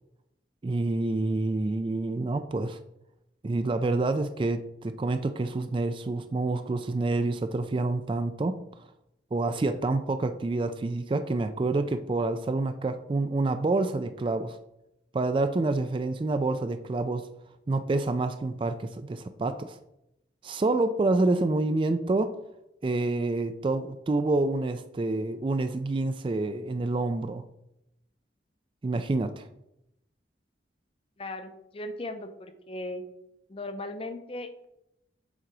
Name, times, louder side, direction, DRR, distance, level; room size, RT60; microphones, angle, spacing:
voice 1, 0.6-2.8 3.4-8.6 9.3-14.6 15.1-17.3 17.7-19.8 20.4-22.3 22.8-27.4 28.8-29.5, right 2 dB, 25° right, 10 dB, 0.3 m, -27 dB
voice 2, 31.2-33.0 33.5-34.7, left 2 dB, 30° left, 8 dB, 0.6 m, -37 dB
7.4 x 3.9 x 4.7 m, 0.85 s
head